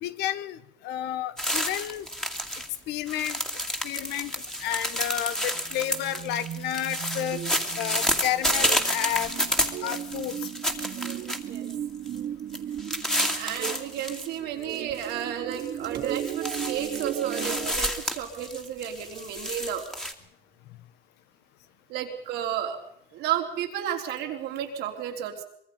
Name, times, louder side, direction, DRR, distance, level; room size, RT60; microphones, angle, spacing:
voice 1, 0.0-2.1 2.9-3.4 3.8-4.3 4.6-7.4 7.8-9.3 9.8-10.4, left 12 dB, 85° left, 14 dB, 1.2 m, -31 dB
sound 1, 1.4-2.7 2.9-11.7 12.1-12.2 12.5-14.3 14.6-15.1 15.5-20.1, equal, 5° left, 2.3 m, -30 dB
sound 2, 5.5-17.8, right 10 dB, 55° right, 0.9 m, -36 dB
voice 2, 13.3-19.8 21.9-22.8 23.1-25.4, right 10 dB, 90° right, 2 dB, 3.6 m, -32 dB
24.5 x 22.0 x 5.4 m, 0.74 s
cardioid pair, 110°, 17 cm